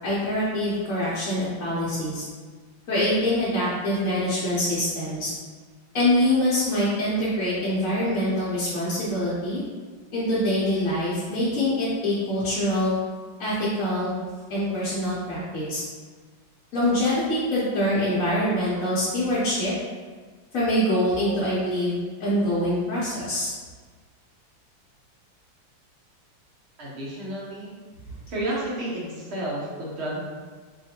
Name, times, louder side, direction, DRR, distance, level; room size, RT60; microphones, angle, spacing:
voice 1, 0.0-2.2 2.9-5.3 5.9-9.6 10.1-13.0 13.4-14.1 14.5-15.8 16.7-19.7 20.5-23.5, left 1 dB, 50° left, -10 dB, 1.1 m, -24 dB
voice 2, 26.8-27.7 28.3-30.2, right 1 dB, 45° right, -5 dB, 0.9 m, -31 dB
5.0 x 2.7 x 2.9 m, 1.5 s
omnidirectional pair, 2.1 m